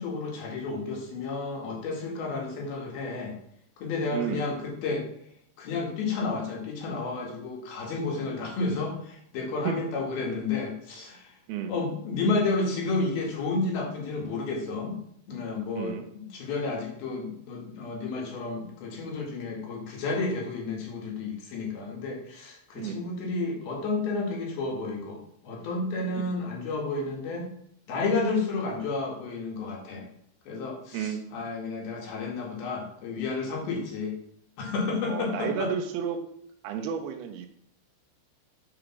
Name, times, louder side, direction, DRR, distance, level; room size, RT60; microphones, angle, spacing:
voice 1, 0.0-3.3 3.8-5.1 5.6-11.3 11.7-15.0 15.3-27.5 27.9-30.1 30.5-34.1 34.6-35.7, left 3 dB, 70° left, 0 dB, 3.6 m, -31 dB
voice 2, 4.1-4.4 9.6-9.8 11.5-11.7 15.8-16.1 22.8-23.0 26.2-26.3 30.9-31.2 35.1-36.2 36.6-37.5, right 7 dB, 80° right, 6 dB, 2.6 m, -32 dB
7.7 x 5.0 x 5.9 m, 0.69 s
omnidirectional pair, 4.7 m